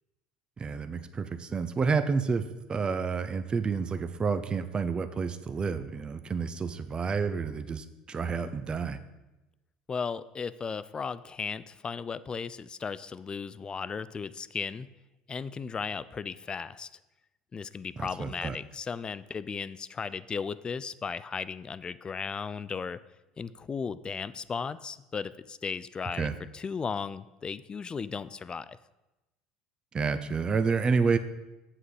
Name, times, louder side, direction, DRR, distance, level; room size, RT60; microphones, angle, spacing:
voice 1, 0.6-9.0 18.0-18.6 26.2-26.3 29.9-31.2, right 5 dB, 30° right, 11 dB, 0.5 m, -29 dB
voice 2, 9.9-14.9 15.3-16.9 17.5-23.0 23.4-28.8, left 5 dB, 25° left, 16 dB, 0.4 m, -36 dB
7.8 x 5.8 x 4.9 m, 1.0 s
hypercardioid pair, 65°, 3 cm